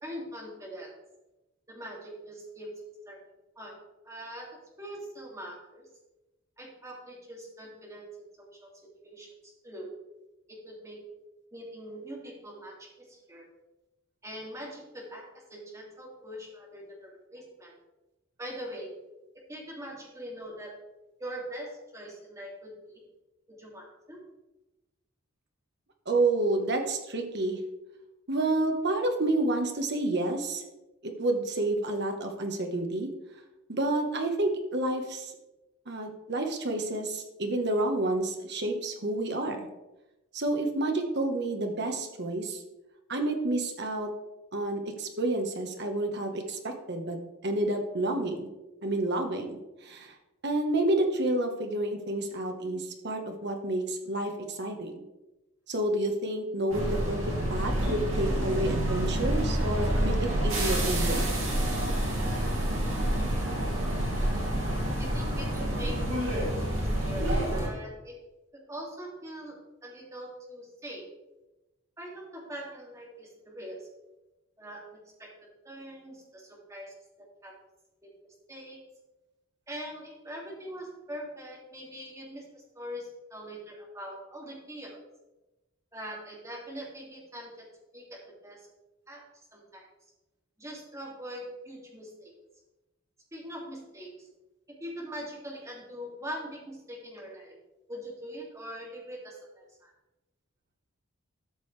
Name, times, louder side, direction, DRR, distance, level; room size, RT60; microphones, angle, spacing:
voice 1, 0.0-0.9 1.7-2.7 3.1-3.2 3.6-3.8 4.0-5.9 6.6-8.1 8.4-8.7 9.0-9.3 9.6-9.9 10.5-11.0 11.5-13.5 14.2-17.7 18.4-18.9 19.5-20.7 21.2-23.0 23.5-24.2 65.0-68.2 68.5-69.6 69.8-71.1 72.0-73.9 74.6-75.3 75.6-77.5 78.0-78.8 79.7-85.0 85.9-87.7 87.9-88.6 89.1-89.2 89.5-89.9 90.6-92.3 93.3-94.3 94.8-97.5 97.9-99.9, equal, 15° right, -4 dB, 2.5 m, -42 dB
voice 2, 26.1-27.6 28.3-30.6 31.0-33.1 33.7-35.3 35.9-39.7 40.3-42.6 43.1-44.1 44.5-47.2 47.4-48.5 48.8-50.1 50.4-55.0 55.7-57.2 57.5-61.4, right 2 dB, 50° right, 4 dB, 1.2 m, -29 dB
sound 1, 56.7-67.7, right 1 dB, 65° right, 2.8 m, -28 dB
13.0 x 6.3 x 3.3 m, 1.0 s
head